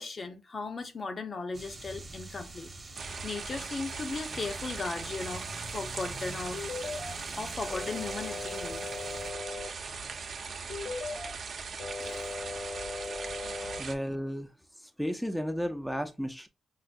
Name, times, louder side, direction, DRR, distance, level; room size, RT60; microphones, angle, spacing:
voice 1, 0.0-2.7 3.2-6.6 7.4-8.9 12.0-12.3, left 3 dB, 40° left, 0.7 m, -37 dB
sound 1, 1.5-9.3, right 2 dB, 30° right, 1.0 m, -45 dB
sound 2, 3.0-14.0, right 5 dB, 55° right, 0.8 m, -40 dB
sound 3, 6.5-7.1 7.7-9.7 10.7-11.3 11.8-13.8, left 3 dB, 80° left, 1.5 m, -38 dB
voice 2, 13.8-14.5 15.0-16.5, equal, ahead, 0.5 m, -33 dB
5.6 x 2.0 x 2.5 m
cardioid pair, 90°, 0 cm